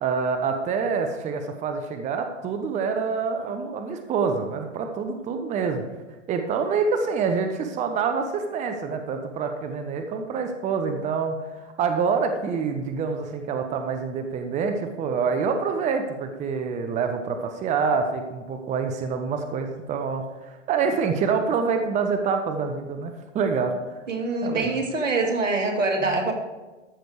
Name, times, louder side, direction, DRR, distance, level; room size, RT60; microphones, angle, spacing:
voice 1, 0.0-5.8 6.3-23.7 24.4-24.8, right 5 dB, 20° right, 6 dB, 0.9 m, -26 dB
voice 2, 24.1-26.3, right 3 dB, 85° right, 2 dB, 2.4 m, -24 dB
14.0 x 6.4 x 4.8 m, 1.2 s
hypercardioid pair, 120°, 37 cm